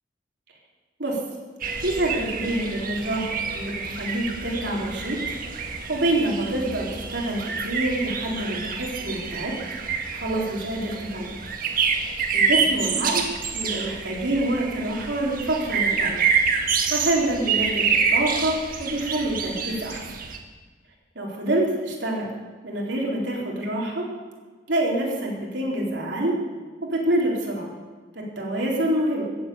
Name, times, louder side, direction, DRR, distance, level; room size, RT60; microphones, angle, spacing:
sound 1, 1.6-20.4, right 5 dB, 50° right, 1.6 m, -27 dB
voice 1, 1.8-5.2 5.5-9.5 10.1-11.4 11.9-13.2 13.5-16.2 16.9-20.0 21.1-22.3 22.6-24.1 24.7-26.4 26.8-27.7 28.1-29.2, right 1 dB, 70° right, -2 dB, 4.1 m, -26 dB
15.5 x 8.4 x 8.7 m, 1.4 s
head